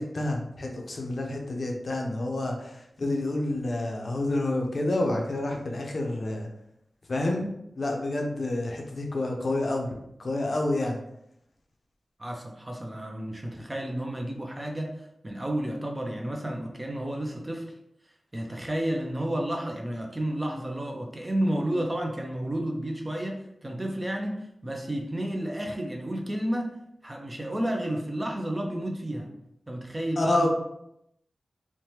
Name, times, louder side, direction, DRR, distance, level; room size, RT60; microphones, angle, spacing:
voice 1, 0.0-6.5 7.1-7.5 7.8-9.9 10.2-11.0 30.2-30.5, left 2 dB, 50° left, 1 dB, 0.5 m, -28 dB
voice 2, 12.2-17.7 18.3-26.7 27.0-29.3 29.7-30.5, right 1 dB, 20° right, 1 dB, 0.4 m, -31 dB
3.2 x 2.1 x 2.8 m, 0.78 s
wide cardioid pair, 105°, 0 cm